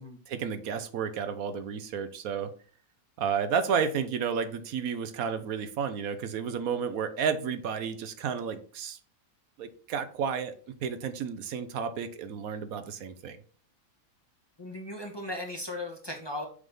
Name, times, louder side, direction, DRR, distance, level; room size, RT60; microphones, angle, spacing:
voice 1, 0.3-2.5 3.2-9.0 9.6-10.5 10.8-13.4, right 6 dB, 75° right, 10 dB, 1.2 m, -31 dB
voice 2, 14.6-16.5, left 1 dB, 20° left, 1 dB, 1.1 m, -37 dB
6.4 x 3.7 x 5.4 m, 0.42 s
omnidirectional pair, 1.5 m